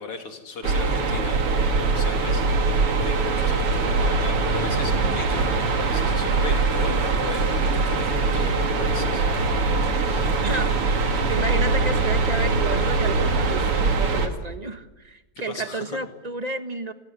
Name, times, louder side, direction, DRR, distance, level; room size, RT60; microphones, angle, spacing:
voice 1, 0.0-9.2 10.0-10.8 15.5-16.0, left 4 dB, 85° left, 4 dB, 4.2 m, -38 dB
sound 1, 0.6-14.3, right 3 dB, 85° right, 3.3 m, -22 dB
voice 2, 10.4-10.7 11.3-16.9, right 3 dB, 20° right, 8 dB, 1.4 m, -31 dB
29.5 x 18.5 x 9.8 m, 1.1 s
omnidirectional pair, 2.4 m